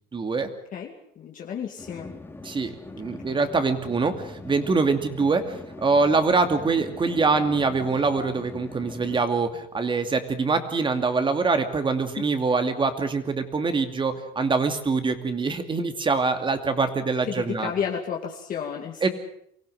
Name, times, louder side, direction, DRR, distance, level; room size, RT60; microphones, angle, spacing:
voice 1, 0.1-0.5 2.4-17.7 19.0-19.1, right 4 dB, 30° right, 8 dB, 2.6 m, -24 dB
voice 2, 0.7-2.1 3.3-3.4 17.3-19.0, left 7 dB, 55° left, 0 dB, 2.4 m, -32 dB
sound 1, 1.8-9.3, left 3 dB, 15° left, 2.7 m, -42 dB
24.0 x 16.5 x 7.9 m, 0.71 s
cardioid pair, 110°, 17 cm